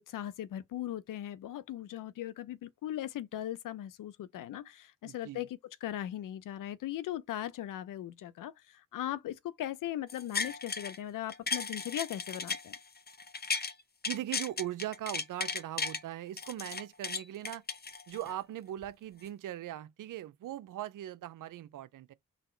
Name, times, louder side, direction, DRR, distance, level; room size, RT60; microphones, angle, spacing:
voice 1, 0.0-12.8, left 12 dB, 80° left, 0.6 m, -39 dB
voice 2, 5.0-5.5 14.1-17.6 18.1-22.1, right 13 dB, 75° right, 0.6 m, -40 dB
sound 1, 10.1-11.0 11.3-13.7 14.0-16.0 16.4-18.4 18.8-18.9, left 4 dB, 30° left, 0.8 m, -36 dB
4.1 x 2.8 x 4.3 m
cardioid pair, 60°, 32 cm